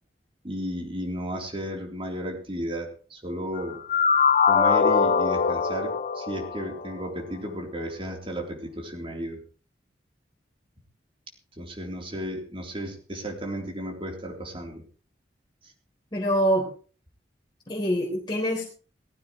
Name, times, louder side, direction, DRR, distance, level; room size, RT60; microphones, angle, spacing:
voice 1, 0.4-3.8 4.4-9.4 11.6-14.8, equal, 30° right, 0 dB, 3.7 m, -34 dB
sound 1, 3.6-7.1, left 6 dB, 40° left, 0.7 m, -22 dB
voice 2, 16.1-16.6 17.7-18.6, equal, 25° left, -3 dB, 3.9 m, -24 dB
18.5 x 15.0 x 3.2 m, 0.39 s
head